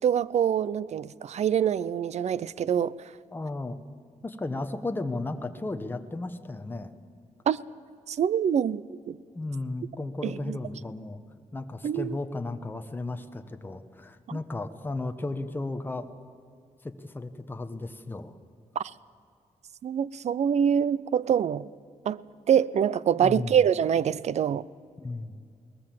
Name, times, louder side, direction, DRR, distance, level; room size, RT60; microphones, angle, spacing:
voice 1, 0.0-2.9 7.5-7.6 8.1-9.2 10.2-10.6 11.8-12.1 18.8-18.9 19.8-21.7 22.1-22.2 22.5-24.6, right 8 dB, 60° right, 20 dB, 0.5 m, -25 dB
voice 2, 3.3-3.8 4.2-6.9 9.3-11.2 11.5-16.1 16.8-18.4 23.2-23.6 25.0-25.3, left 2 dB, 15° left, 7 dB, 1.1 m, -34 dB
21.5 x 19.0 x 7.7 m, 2.3 s
wide cardioid pair, 150°, 13 cm